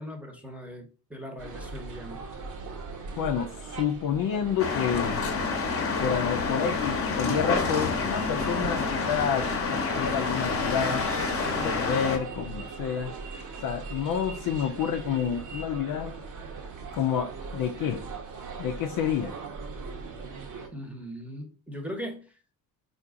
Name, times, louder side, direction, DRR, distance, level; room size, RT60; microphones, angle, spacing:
voice 1, 0.0-2.2 11.4-11.7 20.7-22.3, equal, 5° right, 4 dB, 1.1 m, -39 dB
sound 1, 1.4-20.7, right 4 dB, 40° right, 1.1 m, -40 dB
voice 2, 3.2-5.2 6.0-11.1 11.6-13.1 13.6-16.1 16.9-18.0 18.6-19.3, left 8 dB, 45° left, 5 dB, 0.7 m, -29 dB
sound 2, 4.6-12.2, left 4 dB, 30° left, 1.1 m, -28 dB
4.5 x 2.7 x 3.7 m, 0.35 s
figure-of-eight pair, 55°, 47 cm